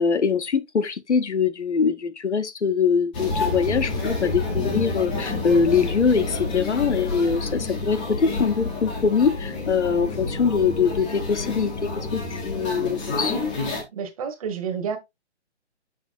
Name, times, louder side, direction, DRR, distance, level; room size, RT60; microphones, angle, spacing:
voice 1, 0.0-13.4, left 6 dB, 75° left, 0.9 m, -23 dB
sound 1, 3.1-13.8, left 3 dB, 10° left, 0.6 m, -29 dB
voice 2, 13.9-15.0, right 6 dB, 30° right, 1.2 m, -29 dB
6.6 x 6.1 x 2.4 m
figure-of-eight pair, 140°, 35 cm